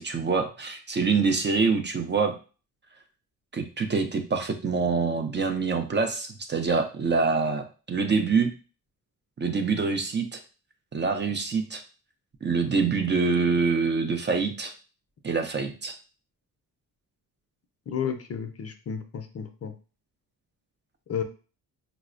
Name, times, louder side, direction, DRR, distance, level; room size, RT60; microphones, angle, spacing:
voice 1, 0.0-2.3 3.5-8.5 9.4-10.4 10.9-11.8 12.4-14.7 15.2-15.9, right 4 dB, 30° right, 5 dB, 0.5 m, -25 dB
voice 2, 17.9-19.7 21.1-21.2, left 7 dB, 40° left, 6 dB, 0.5 m, -32 dB
4.0 x 2.0 x 2.5 m, 0.35 s
cardioid pair, 80°, 37 cm